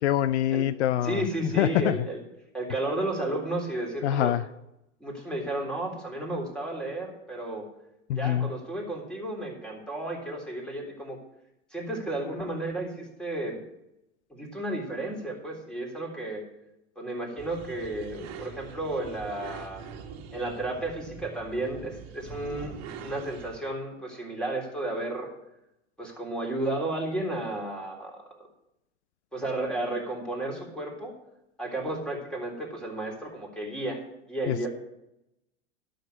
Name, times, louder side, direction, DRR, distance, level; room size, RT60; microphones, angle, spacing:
voice 1, 0.0-1.2 1.6-1.9 4.0-4.4 8.1-8.5 34.5-34.7, left 12 dB, 70° left, 15 dB, 0.5 m, -25 dB
voice 2, 1.0-2.2 2.5-4.3 5.0-7.7 8.2-11.2 11.7-13.6 14.3-16.4 17.0-19.9 20.3-25.3 26.0-28.2 29.3-31.1 31.6-34.0 34.3-34.7, right 1 dB, ahead, -1 dB, 3.7 m, -33 dB
sound 1, 17.4-23.6, right 6 dB, 45° right, 1.7 m, -43 dB
12.0 x 6.6 x 6.6 m, 0.86 s
hypercardioid pair, 95°, 35 cm